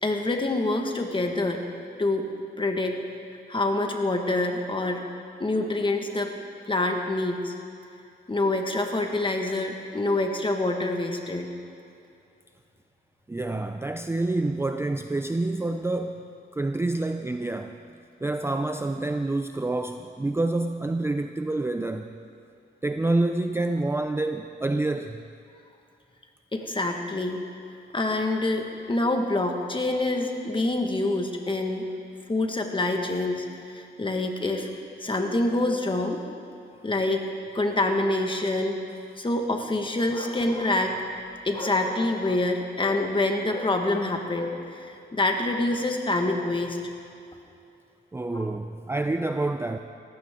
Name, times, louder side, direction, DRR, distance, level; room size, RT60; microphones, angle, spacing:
voice 1, 0.0-1.7 2.0-2.3 2.6-3.0 3.5-5.0 5.4-6.3 6.7-7.5 8.3-11.5 26.5-27.4 27.9-31.9 32.3-34.7 35.0-36.2 36.8-37.3 37.5-38.8 39.2-41.1 41.4-46.8 48.3-48.6, left 2 dB, 25° left, 3 dB, 1.6 m, -26 dB
voice 2, 13.3-17.8 18.2-22.1 22.8-25.2 48.1-49.8, right 2 dB, 15° right, 7 dB, 0.5 m, -27 dB
18.5 x 15.0 x 3.7 m, 2.6 s
cardioid pair, 90°, 20 cm